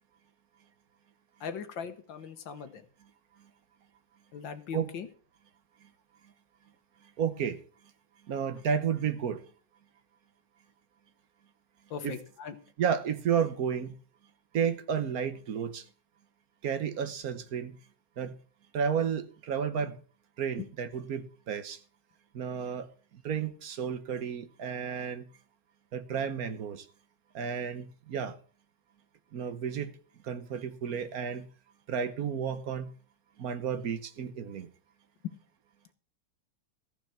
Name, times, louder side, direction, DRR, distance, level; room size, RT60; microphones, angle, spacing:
voice 1, 1.4-2.8 4.3-5.1 11.9-12.6, left 6 dB, 70° left, 1.8 m, -39 dB
voice 2, 7.2-7.6 8.3-9.4 12.0-12.2 12.8-14.0 14.5-15.8 16.6-17.8 18.2-18.4 18.7-20.0 20.4-21.8 22.3-22.9 23.1-25.3 25.9-26.8 27.3-28.4 29.3-29.9 30.2-31.5 31.9-32.9 33.4-34.7, right 7 dB, 55° right, 1.3 m, -32 dB
15.0 x 5.7 x 7.2 m
omnidirectional pair, 2.2 m